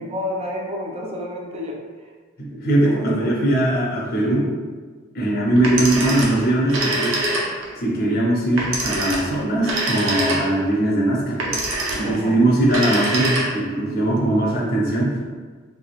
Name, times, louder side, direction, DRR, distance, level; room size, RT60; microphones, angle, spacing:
voice 1, 0.0-1.8 2.5-3.4 12.0-12.4, left 1 dB, 30° right, -1 dB, 0.5 m, -30 dB
voice 2, 2.4-4.5 5.1-7.2 7.8-11.7 11.9-15.2, right 1 dB, 50° left, -4 dB, 0.6 m, -20 dB
Telephone, 5.6-7.8 8.6-10.7 11.4-12.2 12.6-13.8, right 1 dB, 80° right, 0.7 m, -24 dB
3.3 x 3.3 x 2.4 m, 1.4 s
head